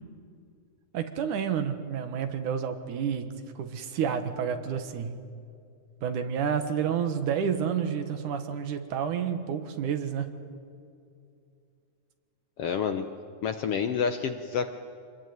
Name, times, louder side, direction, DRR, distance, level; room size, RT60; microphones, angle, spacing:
voice 1, 0.9-5.2 6.0-10.3, right 7 dB, 75° right, 8 dB, 2.9 m, -30 dB
voice 2, 12.6-13.1 13.4-14.7, left 6 dB, 65° left, 7 dB, 1.5 m, -28 dB
26.0 x 20.5 x 9.5 m, 2.4 s
omnidirectional pair, 3.6 m